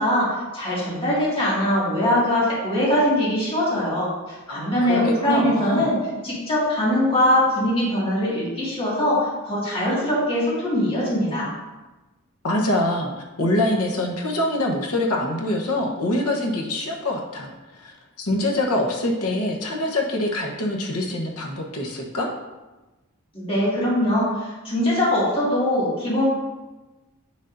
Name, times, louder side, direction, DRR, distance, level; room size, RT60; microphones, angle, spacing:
voice 1, 0.0-6.0 6.2-11.5 23.3-26.3, left 1 dB, 25° left, -8 dB, 2.1 m, -22 dB
voice 2, 4.5-5.9 12.4-22.3, left 1 dB, 80° left, 1 dB, 1.1 m, -25 dB
7.1 x 6.3 x 2.7 m, 1.1 s
head